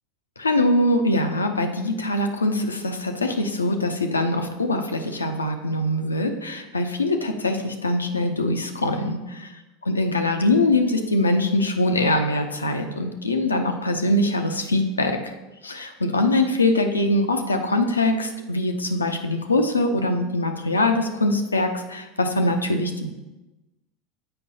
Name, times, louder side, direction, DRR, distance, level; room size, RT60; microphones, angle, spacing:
voice 1, 0.4-9.5 9.9-15.2 15.6-23.1, left 1 dB, 90° left, 5 dB, 0.5 m, -23 dB
7.7 x 5.2 x 2.7 m, 1.1 s
figure-of-eight pair, 80°, 0 cm